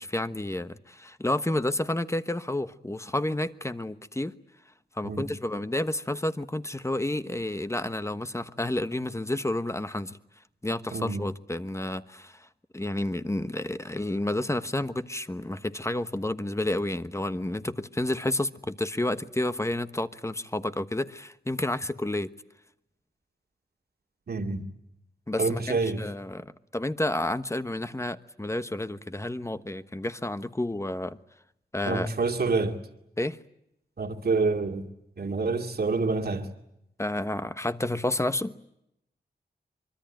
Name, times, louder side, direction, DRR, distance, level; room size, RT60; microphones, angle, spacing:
voice 1, 0.0-4.3 5.0-10.2 10.6-12.4 12.7-22.3 25.3-31.2 31.7-32.1 33.2-33.4 37.0-38.5, left 1 dB, 15° left, 1.2 m, -30 dB
voice 2, 10.9-11.2 24.3-24.7 25.4-26.0 31.9-32.8 34.0-34.9 35.2-36.5, right 4 dB, 60° right, 2.4 m, -27 dB
25.0 x 23.5 x 9.1 m
cardioid pair, 70°, 18 cm